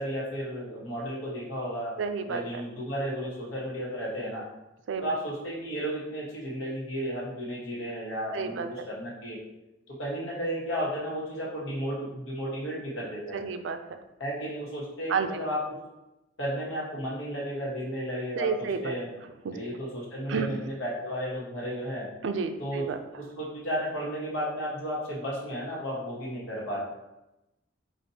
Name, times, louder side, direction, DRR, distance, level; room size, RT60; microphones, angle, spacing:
voice 1, 0.0-1.9 2.3-4.4 5.0-9.4 9.9-13.4 14.2-15.7 16.4-19.1 19.5-22.1 22.6-22.8 23.1-26.8, equal, 85° left, -5 dB, 1.3 m, -33 dB
voice 2, 2.0-2.6 4.9-5.2 8.3-8.7 13.3-13.8 15.1-15.3 18.4-18.9 19.4-19.5 20.3-20.5 22.2-23.0, right 5 dB, 70° right, 8 dB, 0.4 m, -30 dB
5.1 x 2.5 x 2.8 m, 0.95 s
head